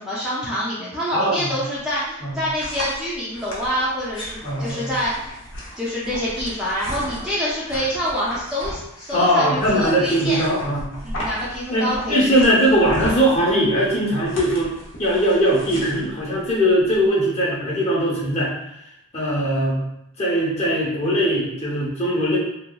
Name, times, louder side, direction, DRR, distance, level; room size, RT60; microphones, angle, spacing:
voice 1, 0.0-5.3 5.8-10.4 11.0-12.2, equal, 5° right, -9 dB, 0.4 m, -26 dB
voice 2, 1.1-1.5 2.2-2.4 4.4-4.9 9.1-10.9 11.7-14.7 15.0-18.5 19.1-19.8 20.2-22.4, equal, 30° left, -5 dB, 0.7 m, -20 dB
sound 1, 1.8-17.1, equal, 75° left, 0.7 m, -36 dB
2.8 x 2.4 x 2.2 m, 0.83 s
head